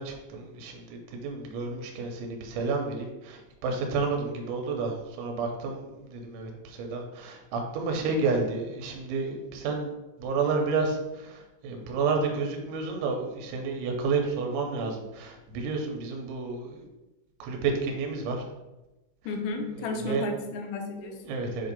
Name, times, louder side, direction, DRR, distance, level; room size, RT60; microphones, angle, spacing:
voice 1, 0.0-9.9 10.2-16.9 17.4-18.5 20.0-20.3 21.2-21.7, right 4 dB, 90° right, 1 dB, 3.2 m, -30 dB
voice 2, 19.3-21.4, left 3 dB, 85° left, 4 dB, 3.0 m, -33 dB
7.6 x 2.7 x 5.2 m, 1.0 s
omnidirectional pair, 5.4 m